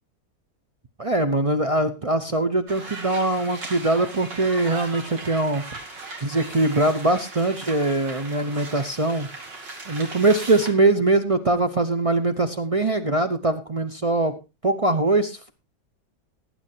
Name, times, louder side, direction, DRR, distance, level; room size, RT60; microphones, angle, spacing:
voice 1, 1.0-5.6 6.2-9.3 9.9-14.3 14.6-15.5, right 2 dB, 50° right, 8 dB, 0.4 m, -22 dB
sound 1, 2.7-10.7, right 3 dB, 80° right, 3.1 m, -38 dB
18.5 x 9.7 x 2.8 m, 0.27 s
omnidirectional pair, 1.9 m